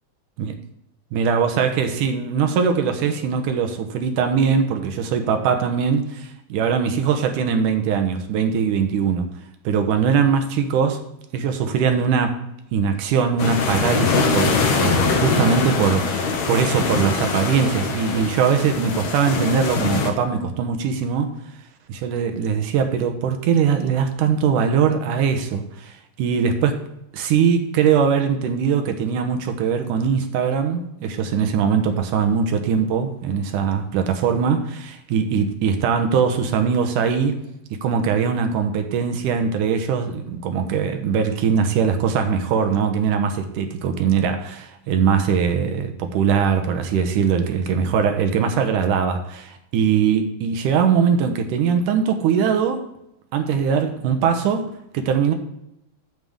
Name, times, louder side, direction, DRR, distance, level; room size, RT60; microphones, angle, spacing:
voice 1, 1.1-9.3 9.6-11.0 11.3-12.4 12.7-21.4 21.9-26.8 27.1-37.4 37.7-52.8 53.3-55.3, right 6 dB, 85° right, 6 dB, 2.5 m, -21 dB
sound 1, 13.4-20.1, left 4 dB, 65° left, 2.2 m, -22 dB
9.3 x 7.9 x 3.6 m, 0.83 s
omnidirectional pair, 3.6 m